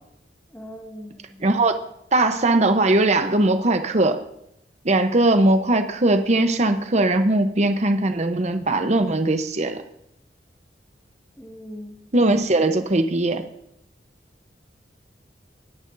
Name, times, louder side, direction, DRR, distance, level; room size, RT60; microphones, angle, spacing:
voice 1, 0.5-1.5 11.4-12.0, equal, 10° left, -1 dB, 1.9 m, -40 dB
voice 2, 1.4-1.8 2.1-4.2 4.8-9.8 12.1-13.4, right 2 dB, 40° right, 8 dB, 0.8 m, -20 dB
21.0 x 10.5 x 2.6 m, 0.78 s
head